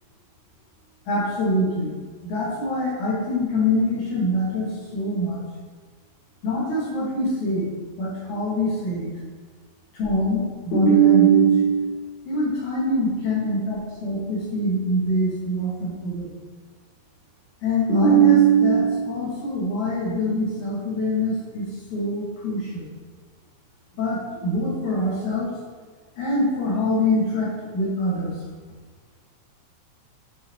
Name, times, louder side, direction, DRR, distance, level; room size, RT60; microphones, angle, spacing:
voice 1, 1.1-1.9 2.2-5.4 6.4-7.7 8.0-9.1 10.0-11.9 12.3-16.3 17.6-21.7 21.9-22.8 24.0-25.5 26.2-28.3, right 2 dB, 90° left, -6 dB, 3.7 m, -22 dB
6.9 x 4.9 x 4.6 m, 1.5 s
omnidirectional pair, 3.3 m